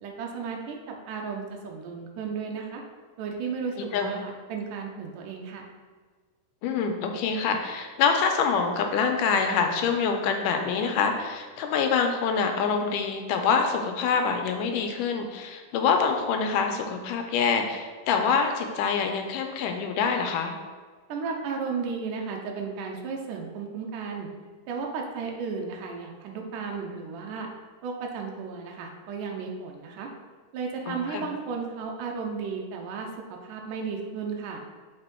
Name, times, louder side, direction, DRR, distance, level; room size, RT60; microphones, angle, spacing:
voice 1, 0.0-2.8 3.2-5.7 21.1-24.3 24.7-27.5 27.8-30.1 30.5-34.6, right 5 dB, 85° right, 1 dB, 2.3 m, -34 dB
voice 2, 3.8-4.1 6.6-20.5 30.9-31.3, left 5 dB, 85° left, 4 dB, 2.2 m, -26 dB
6.8 x 4.5 x 4.2 m, 1.5 s
omnidirectional pair, 3.7 m